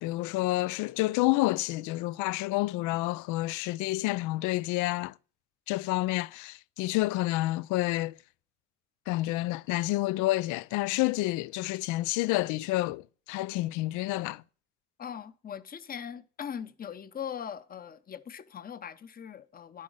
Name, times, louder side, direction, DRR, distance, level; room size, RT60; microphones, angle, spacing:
voice 1, 0.0-5.1 5.7-8.1 9.1-14.4, left 18 dB, 80° left, 0.5 m, -29 dB
voice 2, 15.0-19.8, left 8 dB, 30° left, 0.8 m, -40 dB
10.5 x 5.6 x 6.3 m
cardioid pair, 105°, 30 cm